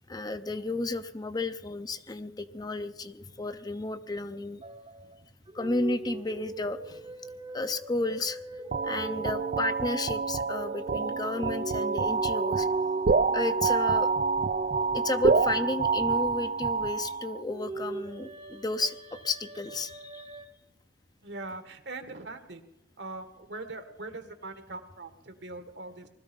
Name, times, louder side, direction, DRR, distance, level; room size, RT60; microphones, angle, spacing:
voice 1, 0.1-4.6 5.5-7.1 7.5-12.7 13.3-14.1 14.9-20.4, left 2 dB, 20° left, 10 dB, 0.6 m, -33 dB
sound 1, 4.6-5.2 5.5-16.5 17.4-20.5, right 2 dB, 30° right, 0.9 m, -38 dB
sound 2, 8.7-17.4, right 4 dB, 45° right, 0.5 m, -28 dB
voice 2, 21.2-22.6 23.0-26.1, right 2 dB, 70° right, 8 dB, 1.8 m, -41 dB
20.5 x 13.0 x 5.3 m, 0.82 s
head